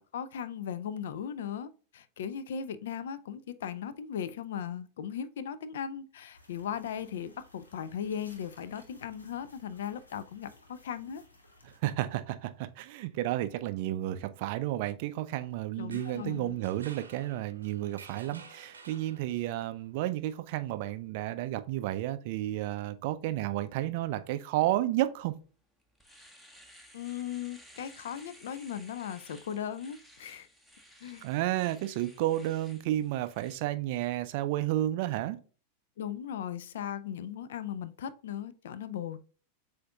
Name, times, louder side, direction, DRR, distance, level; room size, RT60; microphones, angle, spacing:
voice 1, 0.0-11.2 15.8-16.6 26.9-30.5 31.0-31.2 36.0-39.2, left 8 dB, 60° left, 0.3 m, -38 dB
sound 1, 6.3-11.8, left 2 dB, 75° left, 0.8 m, -59 dB
voice 2, 11.6-25.3 31.2-35.4, right 14 dB, 50° right, 0.4 m, -32 dB
sound 2, 15.8-19.6, right 5 dB, 75° right, 0.7 m, -52 dB
Domestic sounds home sounds, 25.3-25.4 25.8-33.6, equal, 5° left, 0.8 m, -56 dB
7.4 x 2.6 x 2.3 m
figure-of-eight pair, 90°, 0 cm